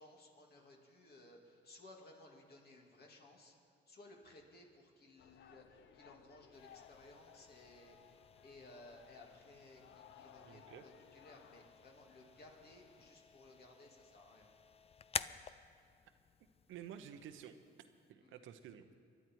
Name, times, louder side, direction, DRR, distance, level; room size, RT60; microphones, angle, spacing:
voice 1, 0.0-3.5 3.9-14.5 18.2-18.4, left 2 dB, 55° left, 0 dB, 2.8 m, -59 dB
sound 1, 5.2-13.1, left 9 dB, 70° left, 0.7 m, -63 dB
sound 2, 6.5-18.1, left 6 dB, 30° left, 0.4 m, -51 dB
voice 2, 10.4-10.8 16.7-17.5 18.1-18.9, right 9 dB, 85° right, 9 dB, 0.9 m, -51 dB
23.5 x 10.5 x 4.7 m, 2.3 s
cardioid pair, 90°, 20 cm